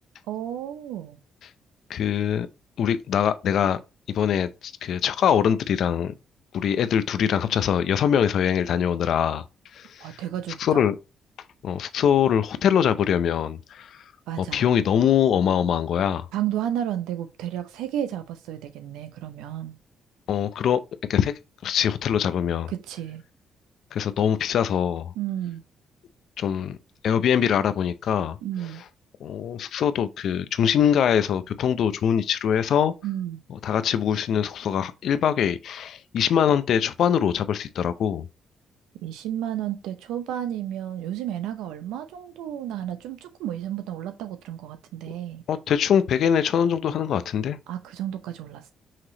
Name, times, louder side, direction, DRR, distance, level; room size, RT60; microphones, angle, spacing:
voice 1, 0.3-1.2 10.0-10.9 14.3-14.7 16.3-19.8 22.7-23.2 25.2-25.6 28.4-28.8 33.0-33.4 39.0-45.4 47.7-48.7, right 11 dB, 90° right, 0.6 m, -32 dB
voice 2, 1.9-2.5 2.8-3.8 4.1-6.1 6.5-9.4 9.7-10.2 10.6-10.9 11.6-14.0 14.4-16.3 20.3-20.8 21.1-21.3 21.6-22.7 23.9-25.1 26.4-26.8 27.0-28.4 29.2-32.9 33.6-38.3 45.5-47.6, left 8 dB, 70° left, 0.5 m, -23 dB
5.8 x 3.1 x 2.8 m
supercardioid pair, 70°, 0 cm